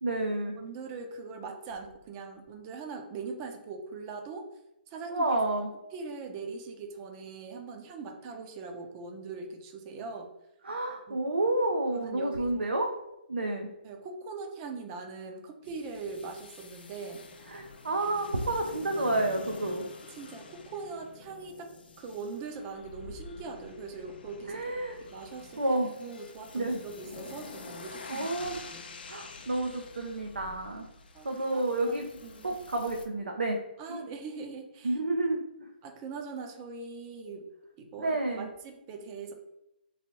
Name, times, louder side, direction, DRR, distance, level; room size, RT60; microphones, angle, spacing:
voice 1, 0.0-0.6 5.1-5.7 10.6-12.9 13.3-13.7 17.5-19.8 24.5-25.0 25.6-25.9 26.5-26.8 28.1-28.6 29.1-30.9 31.2-32.1 32.4-33.6 33.9-34.0 34.8-35.7 38.0-38.5, right 2 dB, 85° right, 3 dB, 0.5 m, -30 dB
voice 2, 0.6-4.5 4.9-5.4 5.9-10.3 11.1-11.2 11.9-12.7 13.8-17.2 20.2-21.7 22.0-24.6 25.0-25.6 26.0-29.2 31.1-31.3 31.5-32.6 33.8-35.0 35.8-37.5 37.8-39.3, right 4 dB, 30° right, 5 dB, 0.5 m, -41 dB
sound 1, 15.6-33.1, left 4 dB, 65° left, 0.5 m, -47 dB
3.1 x 2.5 x 2.9 m, 0.87 s
figure-of-eight pair, 135°, 6 cm